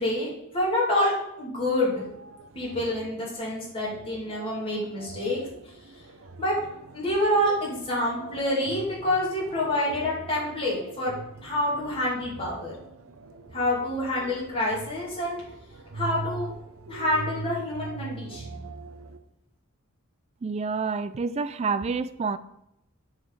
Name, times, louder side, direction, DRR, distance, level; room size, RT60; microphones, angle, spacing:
voice 1, 0.0-2.1 2.5-5.4 6.4-6.5 6.9-11.1 11.4-12.7 13.5-15.4 15.9-16.5 16.9-18.7, left 1 dB, 25° left, -5 dB, 2.7 m, -27 dB
sound 1, 1.9-19.2, right 3 dB, 70° right, 0.7 m, -42 dB
voice 2, 20.4-22.4, right 4 dB, 30° right, 14 dB, 0.3 m, -28 dB
6.9 x 4.1 x 6.3 m, 0.80 s
head